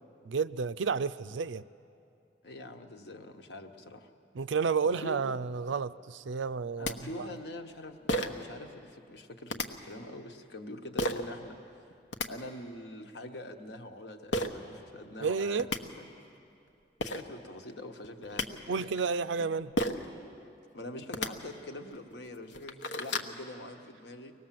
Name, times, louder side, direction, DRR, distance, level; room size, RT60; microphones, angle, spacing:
voice 1, 0.3-1.6 4.3-7.3 15.2-15.7 18.7-19.7, right 5 dB, 85° right, 15 dB, 0.5 m, -31 dB
voice 2, 2.4-4.1 4.8-5.3 6.8-12.0 12.3-15.7 16.0-16.1 17.0-18.8 20.7-24.3, left 1 dB, 65° left, 6 dB, 1.2 m, -44 dB
sound 1, 6.5-6.6 6.8-6.9 8.1-8.5 9.5-9.7 11.0-11.2 11.9-12.3 14.3-14.5 15.3-15.4 15.6-15.8 16.7-16.8 17.0-17.2 18.0-18.5 19.8-20.1 21.0-21.3 21.9-22.0 22.4-23.3, left 1 dB, 85° left, 1.1 m, -31 dB
24.5 x 19.0 x 7.6 m, 2.5 s
head